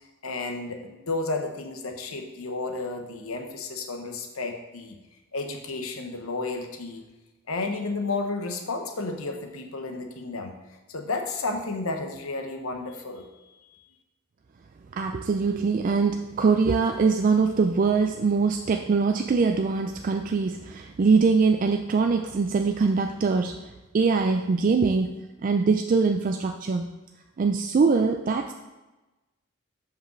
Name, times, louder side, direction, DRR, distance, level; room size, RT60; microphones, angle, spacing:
voice 1, 0.2-5.0 5.3-7.0 7.5-10.5 10.9-13.3, left 3 dB, 85° left, 4 dB, 1.0 m, -32 dB
voice 2, 14.9-25.1 25.4-26.9 27.4-28.5, right 4 dB, 40° right, 5 dB, 0.3 m, -23 dB
5.7 x 5.0 x 5.9 m, 1.1 s
head